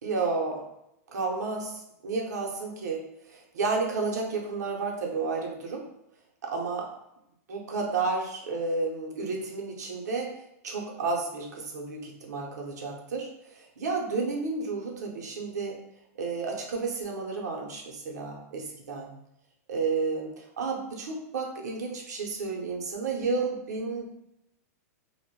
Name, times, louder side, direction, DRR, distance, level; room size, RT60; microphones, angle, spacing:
voice 1, 0.0-0.7 1.1-5.8 6.4-6.9 7.5-10.4 10.6-15.8 16.2-19.1 19.7-24.0, right 4 dB, 85° right, 0 dB, 0.7 m, -31 dB
2.1 x 2.1 x 3.6 m, 0.81 s
hypercardioid pair, 135°, 9 cm